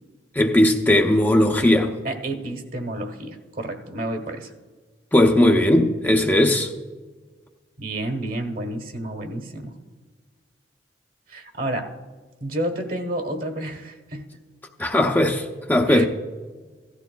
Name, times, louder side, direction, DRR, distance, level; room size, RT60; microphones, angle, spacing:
voice 1, 0.3-1.9 5.1-6.7 14.8-16.1, left 1 dB, 10° left, 2 dB, 0.6 m, -18 dB
voice 2, 2.0-4.5 7.8-9.7 11.3-11.9 12.4-14.3 15.9-16.1, right 1 dB, 55° right, 5 dB, 1.2 m, -30 dB
16.5 x 13.5 x 2.3 m, 1.4 s
head